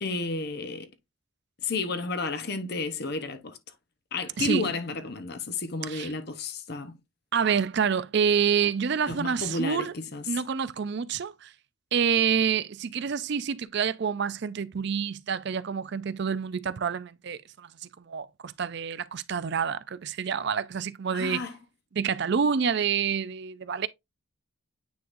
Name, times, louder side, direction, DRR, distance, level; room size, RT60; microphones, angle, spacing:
voice 1, 0.0-0.9 1.6-3.6 4.1-6.9 9.1-10.3 21.1-21.6, left 3 dB, 50° left, 0.9 m, -32 dB
voice 2, 4.4-4.7 5.9-6.1 7.3-9.9 10.3-11.5 11.9-17.7 18.0-21.4 21.9-23.9, right 7 dB, 50° right, 0.4 m, -27 dB
9.4 x 3.8 x 2.6 m
head